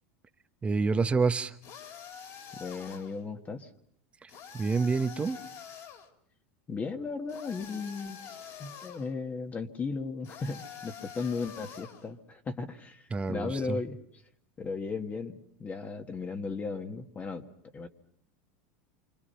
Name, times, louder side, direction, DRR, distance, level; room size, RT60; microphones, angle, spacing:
voice 1, 0.6-1.6 4.2-5.4 13.1-13.8, right 4 dB, 20° right, 10 dB, 1.1 m, -28 dB
sound 1, 1.6-3.2 4.3-6.1 7.3-9.1 10.2-12.1, left 7 dB, 50° left, 3.3 m, -46 dB
voice 2, 2.6-3.7 6.7-8.2 8.6-13.0 13.3-14.0 14.6-17.4 17.7-17.9, left 4 dB, 25° left, 6 dB, 1.6 m, -36 dB
28.0 x 25.5 x 5.7 m, 0.65 s
supercardioid pair, 125°, 7 cm